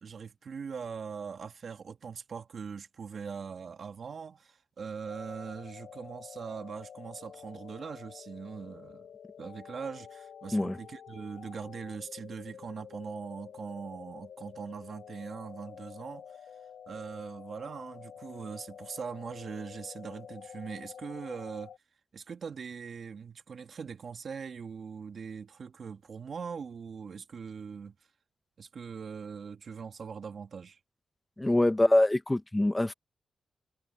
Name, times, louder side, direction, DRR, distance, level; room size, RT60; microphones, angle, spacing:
voice 1, 0.0-9.1 9.4-16.4 16.9-21.7 22.1-27.9 28.6-30.8, right 6 dB, 60° right, 2.1 m, -41 dB
sound 1, 5.0-21.8, left 8 dB, 90° left, 2.9 m, -49 dB
voice 2, 31.4-32.9, left 1 dB, 15° left, 1.0 m, -24 dB
cardioid pair, 85°, 0 cm